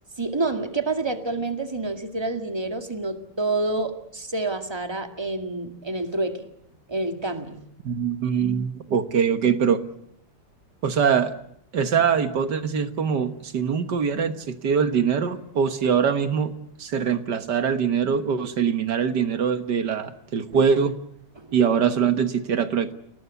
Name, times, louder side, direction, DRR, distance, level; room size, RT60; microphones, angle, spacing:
voice 1, 0.2-6.5 6.9-8.0 21.4-21.5, right 2 dB, 15° right, 6 dB, 1.9 m, -28 dB
voice 2, 7.9-9.8 10.8-11.3 11.7-16.5 16.8-20.9 21.5-22.9, right 7 dB, 60° right, 10 dB, 1.9 m, -23 dB
29.0 x 18.5 x 8.3 m, 0.73 s
omnidirectional pair, 2.1 m